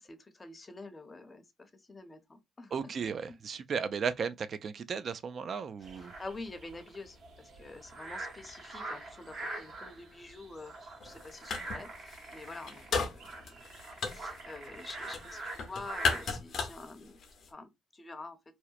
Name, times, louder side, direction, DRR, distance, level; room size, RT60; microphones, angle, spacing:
voice 1, 0.0-2.8 6.0-13.5 14.0-17.2 17.5-18.4, left 3 dB, 25° left, 0.6 m, -47 dB
voice 2, 2.7-6.1, right 6 dB, 50° right, 0.3 m, -35 dB
sound 1, 5.8-16.3, right 2 dB, 75° right, 1.2 m, -45 dB
sound 2, 11.0-11.8 12.1-17.5, left 4 dB, 65° left, 0.7 m, -35 dB
2.8 x 2.1 x 2.3 m
cardioid pair, 90°, 0 cm